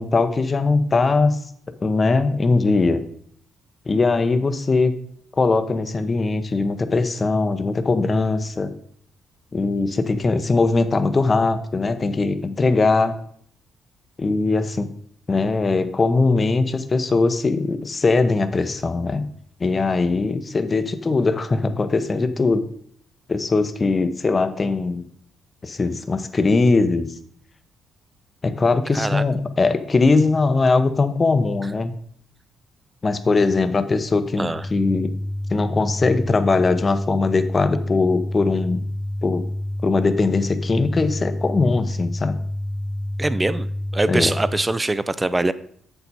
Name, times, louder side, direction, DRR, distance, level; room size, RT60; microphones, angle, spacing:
voice 1, 0.0-1.4 1.8-3.0 3.9-4.9 5.4-8.7 9.5-13.1 14.2-14.9 15.3-19.3 19.6-22.6 23.3-25.1 25.6-27.1 28.4-31.9 33.0-35.2 35.5-38.8 39.2-39.4 39.8-42.4 44.1-44.3, left 3 dB, 30° left, 9 dB, 0.8 m, -20 dB
voice 2, 28.9-29.2 34.4-34.6 43.2-43.7 43.9-45.5, right 2 dB, 15° right, 15 dB, 0.5 m, -22 dB
sound 1, 34.5-44.5, left 1 dB, 75° left, 2.0 m, -28 dB
7.7 x 7.0 x 4.2 m, 0.64 s
cardioid pair, 90°, 0 cm